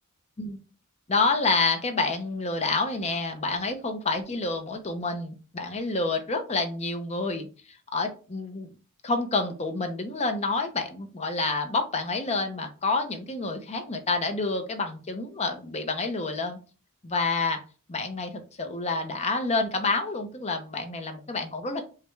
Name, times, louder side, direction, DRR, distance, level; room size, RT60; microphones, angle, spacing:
voice 1, 1.1-8.7 9.0-16.6 17.0-17.6 17.9-18.3 18.6-21.8, left 3 dB, 30° left, 5 dB, 0.6 m, -28 dB
4.9 x 2.2 x 4.5 m, 0.34 s
head